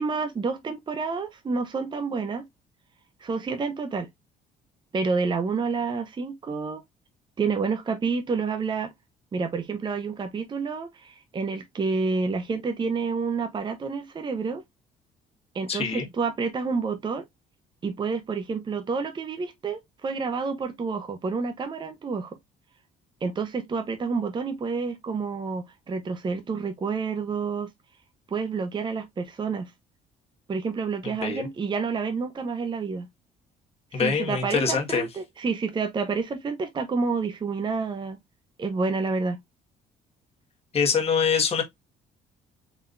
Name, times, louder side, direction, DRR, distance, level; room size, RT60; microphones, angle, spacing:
voice 1, 0.0-2.4 3.2-4.1 4.9-6.8 7.4-8.9 9.3-14.6 15.5-17.2 17.8-22.4 23.2-27.7 28.3-29.7 30.5-33.1 33.9-38.2 38.6-39.4, right 4 dB, 25° right, 0.7 m, -29 dB
voice 2, 15.7-16.1 31.0-31.5 33.9-35.1 40.7-41.6, left 6 dB, 35° left, 1.6 m, -24 dB
4.0 x 3.5 x 2.5 m
cardioid pair, 110°, 17 cm